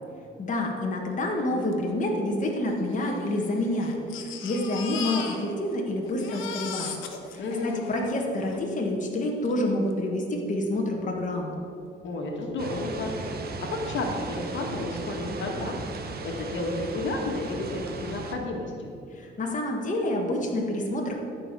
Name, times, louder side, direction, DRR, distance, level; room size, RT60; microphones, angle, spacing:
voice 1, 0.4-6.9 7.3-11.6 19.1-21.2, left 1 dB, 40° left, 0 dB, 1.6 m, -28 dB
Crying sobbing, 1.7-1.8 2.0-2.1 2.9-5.8 6.0-8.6 9.4-9.5 9.9-10.0, left 7 dB, 90° left, 1.2 m, -38 dB
voice 2, 7.4-7.8 12.0-13.1 13.5-15.9 16.2-18.9, left 2 dB, 70° left, 0 dB, 1.8 m, -31 dB
sound 1, 12.6-18.3, right 3 dB, 50° right, 1.3 m, -36 dB
13.0 x 5.0 x 6.8 m, 2.5 s
cardioid pair, 90°, 20 cm